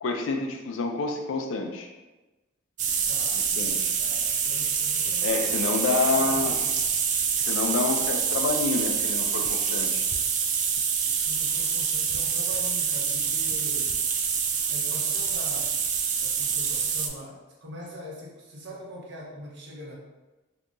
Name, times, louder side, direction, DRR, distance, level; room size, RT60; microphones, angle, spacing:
voice 1, 0.0-1.9 3.6-3.9 5.2-6.5 7.4-10.0, left 4 dB, 70° left, 4 dB, 0.4 m, -28 dB
sound 1, 2.8-17.1, right 6 dB, 40° right, 0.3 m, -26 dB
voice 2, 3.1-3.5 4.0-6.8 11.2-14.0 14.7-15.7 16.2-19.9, equal, 60° right, -4 dB, 0.9 m, -42 dB
2.8 x 2.5 x 3.6 m, 1.1 s
head